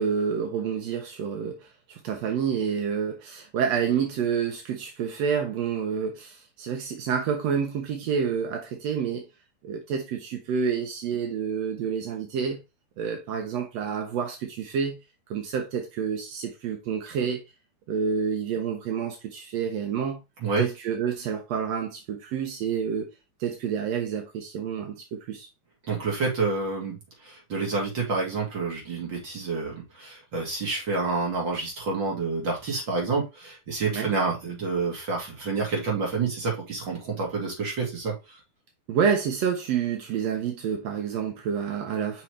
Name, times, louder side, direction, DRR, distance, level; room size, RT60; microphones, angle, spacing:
voice 1, 0.0-9.2 9.6-12.6 13.0-15.0 15.3-17.4 17.9-20.2 20.6-23.1 23.4-25.5 33.9-34.1 38.9-42.2, right 7 dB, 75° right, 1.5 m, -28 dB
voice 2, 25.9-38.4, right 4 dB, 30° right, 3.0 m, -28 dB
6.0 x 5.8 x 3.2 m
omnidirectional pair, 4.5 m